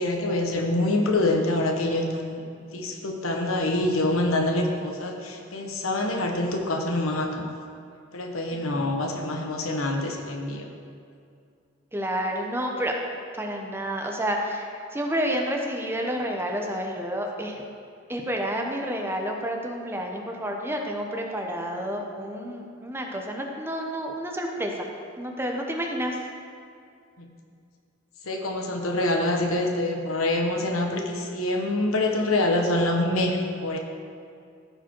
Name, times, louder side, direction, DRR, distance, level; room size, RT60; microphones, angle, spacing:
voice 1, 0.0-2.4 2.7-7.5 8.1-10.7 27.2-27.3 28.2-33.8, left 1 dB, 90° left, 2 dB, 1.2 m, -26 dB
voice 2, 8.5-8.9 11.9-12.9 13.4-17.6 18.1-24.9 25.2-26.2, equal, 10° right, 1 dB, 0.9 m, -30 dB
15.0 x 5.1 x 4.5 m, 2.3 s
head